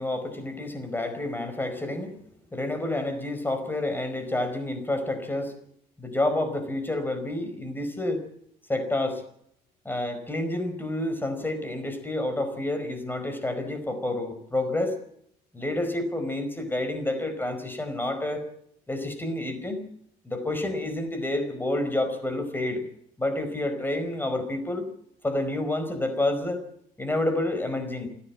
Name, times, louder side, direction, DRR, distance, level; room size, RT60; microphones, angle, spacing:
voice 1, 0.0-2.2 2.5-5.5 6.0-8.2 8.7-9.2 9.8-15.0 15.5-18.4 18.9-19.8 20.2-22.8 23.2-24.9 25.2-26.6 27.0-28.1, left 1 dB, 10° left, 9 dB, 4.8 m, -29 dB
29.0 x 10.5 x 8.7 m, 0.69 s
cardioid pair, 110°, 17 cm